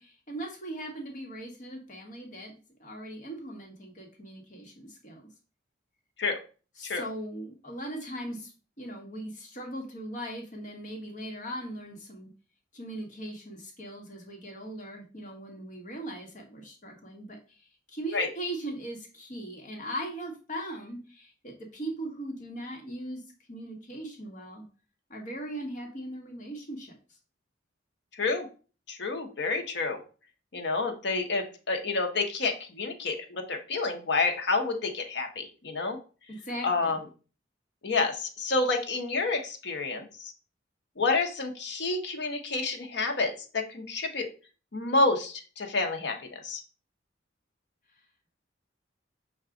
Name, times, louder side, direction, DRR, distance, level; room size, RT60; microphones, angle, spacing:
voice 1, 0.0-5.3 6.8-8.5 8.8-12.3 12.7-23.2 23.5-24.6 25.1-26.9 36.3-37.0, right 1 dB, 40° left, 1 dB, 1.1 m, -39 dB
voice 2, 28.1-28.5 28.9-30.0 30.5-36.0 36.6-37.0 37.8-40.3 41.0-44.3 44.7-46.6, left 3 dB, 65° left, 3 dB, 0.8 m, -29 dB
5.7 x 2.3 x 3.7 m, 0.36 s
head